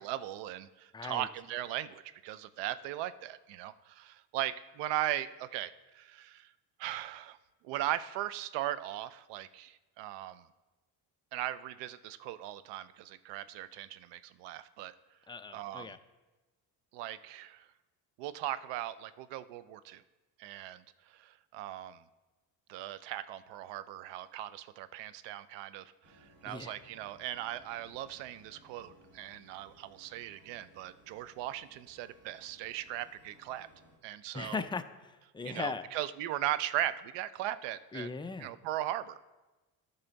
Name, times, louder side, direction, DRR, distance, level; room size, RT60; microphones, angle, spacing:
voice 1, 0.0-6.5 6.8-7.4 7.6-10.5 11.3-14.9 15.5-16.0 16.9-17.6 18.2-20.0 20.4-22.0 22.7-33.7 34.0-34.7 35.4-38.1 38.4-39.2, right 13 dB, 85° right, 15 dB, 0.6 m, -38 dB
voice 2, 0.9-1.3 15.3-16.0 26.4-26.7 34.3-35.8 37.9-38.5, left 4 dB, 10° left, 9 dB, 0.4 m, -38 dB
sound 1, 26.0-34.0, right 1 dB, 45° right, 2.3 m, -62 dB
12.5 x 5.6 x 4.0 m, 1.1 s
cardioid pair, 100°, 41 cm